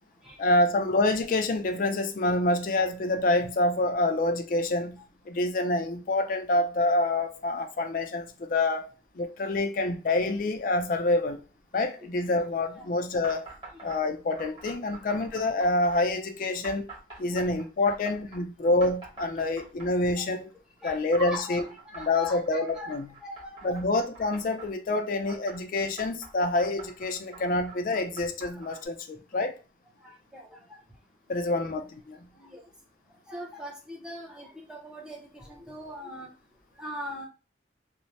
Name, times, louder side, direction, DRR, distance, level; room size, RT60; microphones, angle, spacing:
voice 1, 0.4-5.0 5.3-11.4 11.7-13.5 13.8-16.9 17.2-20.5 20.8-21.7 22.0-23.1 23.6-29.6 31.3-32.3, left 2 dB, 45° left, 0.3 m, -27 dB
sound 1, 13.2-14.0 14.3-16.0 16.6-18.4 18.8-20.1 20.9-24.7 25.2-28.9, right 4 dB, 30° right, 1.2 m, -45 dB
voice 2, 20.8-21.6 21.8-22.9 23.2-23.8 28.5-28.6 30.0-30.8 31.5-31.6 32.4-32.6 33.3-36.3 36.8-37.3, left 2 dB, 5° right, 0.6 m, -40 dB
3.1 x 2.0 x 2.6 m
head